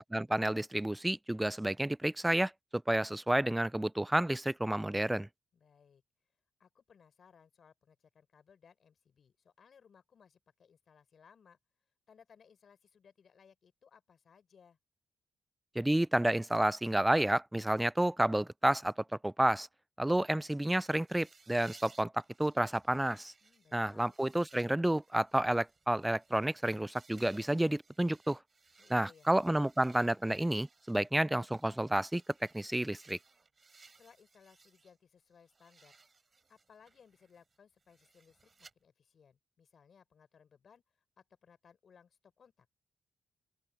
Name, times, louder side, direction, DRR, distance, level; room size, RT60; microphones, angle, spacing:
voice 1, 0.1-5.3 15.8-18.9 19.2-19.7 20.0-23.3 23.7-28.4 28.9-32.2 32.5-33.2, right 1 dB, 10° right, 0.4 m, -30 dB
voice 2, 5.5-6.0 6.6-11.6 12.1-14.8 23.4-24.2 28.8-29.3 34.0-36.0 36.5-38.5 38.8-42.7, left 6 dB, 60° left, 5.1 m, -63 dB
sound 1, 20.7-35.0 35.3-38.7, right 4 dB, 40° right, 4.1 m, -63 dB
open air
cardioid pair, 60°, 0 cm